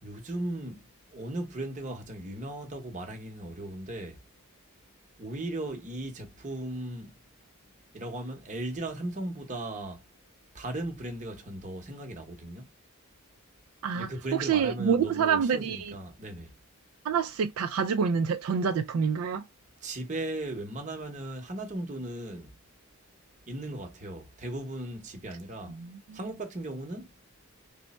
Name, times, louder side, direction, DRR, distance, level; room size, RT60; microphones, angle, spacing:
voice 1, 0.0-4.2 5.2-7.2 7.9-10.0 10.5-12.7 13.9-16.5 19.8-22.5 23.5-25.8 26.1-27.1, right 1 dB, 35° right, 0.8 m, -37 dB
voice 2, 13.8-15.9 17.0-19.4 25.8-26.2, right 6 dB, 75° right, 0.3 m, -27 dB
3.1 x 2.1 x 4.0 m
head